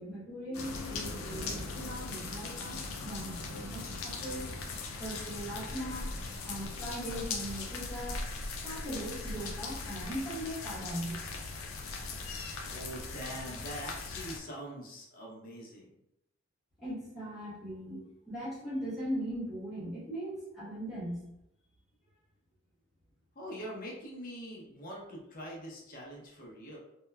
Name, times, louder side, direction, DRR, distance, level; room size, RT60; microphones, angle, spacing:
voice 1, 0.0-4.5 5.0-6.1 6.4-8.2 8.6-11.2 16.8-21.2, equal, ahead, -10 dB, 1.1 m, -39 dB
sound 1, 0.5-14.4, left 3 dB, 80° left, 0.4 m, -39 dB
voice 2, 12.7-15.9 23.4-26.8, equal, 40° left, -3 dB, 0.6 m, -43 dB
2.8 x 2.1 x 2.2 m, 0.85 s
head